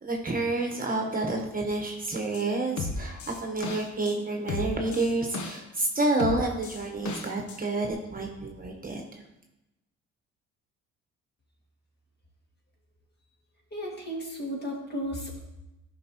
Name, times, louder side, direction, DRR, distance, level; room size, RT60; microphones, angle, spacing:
voice 1, 0.0-9.2, right 2 dB, 30° right, 2 dB, 1.1 m, -29 dB
sound 1, 2.3-2.4 2.8-4.1 4.5-5.9 6.2-7.6 7.9-8.0, left 3 dB, 70° left, 0.9 m, -34 dB
voice 2, 13.7-15.4, equal, 35° left, -1 dB, 2.2 m, -34 dB
11.5 x 5.4 x 3.0 m, 0.96 s
cardioid pair, 90°, 30 cm